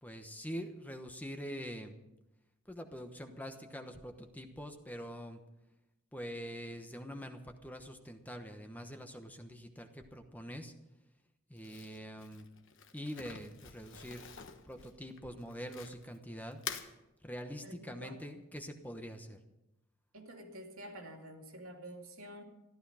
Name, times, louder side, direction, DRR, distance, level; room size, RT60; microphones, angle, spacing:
voice 1, 0.0-2.0 2.7-5.4 6.1-10.7 11.5-12.5 12.9-14.2 14.6-16.6 17.2-19.4, equal, 10° left, 6 dB, 1.1 m, -44 dB
Crumpling crinkling, 11.6-16.2 16.5-16.9, left 7 dB, 60° left, 1.2 m, -46 dB
voice 2, 17.6-18.2 20.1-22.4, equal, 80° right, 1 dB, 2.5 m, -49 dB
14.5 x 13.0 x 5.7 m, 0.92 s
head